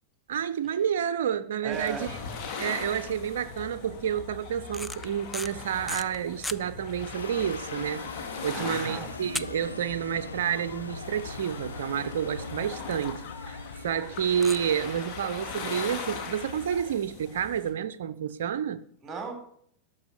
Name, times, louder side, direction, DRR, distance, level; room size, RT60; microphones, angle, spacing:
voice 1, 0.3-2.1 2.6-18.8, right 8 dB, 60° right, 0.7 m, -30 dB
voice 2, 1.6-2.1 8.5-9.1 19.0-19.3, right 5 dB, 15° right, 3.8 m, -36 dB
sound 1, 1.7-17.7, left 5 dB, 40° left, 2.2 m, -40 dB
sound 2, 4.6-6.6 7.2-7.3 7.5-7.7 8.1-8.2 9.3-10.2 10.4-10.5 11.0-11.1 11.4-11.5 11.7-11.8 13.0-13.1 14.4-14.6, left 1 dB, 5° left, 0.5 m, -36 dB
sound 3, 7.0-15.5, left 3 dB, 75° left, 0.8 m, -42 dB
13.0 x 5.7 x 8.4 m
figure-of-eight pair, 90°, 0 cm